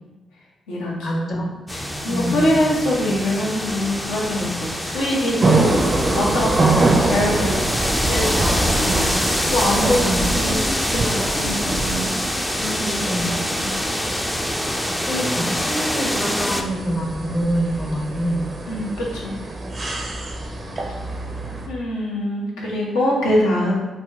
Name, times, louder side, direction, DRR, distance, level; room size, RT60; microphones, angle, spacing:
voice 1, 1.0-1.5 2.1-2.6 9.8-10.2 12.6-13.4 15.0-18.4, equal, 50° left, -1 dB, 1.0 m, -25 dB
voice 2, 1.7-5.8 6.1-7.5 8.1-10.6 10.9-12.1 13.6-13.7 18.7-19.4 21.7-23.7, left 1 dB, 80° left, -4 dB, 0.8 m, -23 dB
sound 1, 1.7-16.6, left 1 dB, 10° left, 0.4 m, -25 dB
sound 2, 5.4-21.7, right 2 dB, 45° right, 0.6 m, -25 dB
3.9 x 2.1 x 3.5 m, 1.1 s
hypercardioid pair, 40°, 0 cm